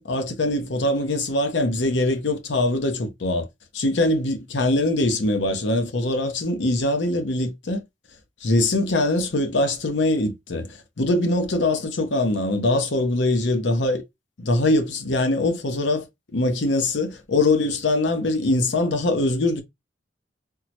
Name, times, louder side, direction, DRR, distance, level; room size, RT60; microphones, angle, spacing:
voice 1, 0.0-3.5 3.7-7.8 8.4-14.0 14.4-16.1 16.3-19.6, left 2 dB, 80° left, 0.7 m, -22 dB
3.6 x 2.1 x 2.8 m
head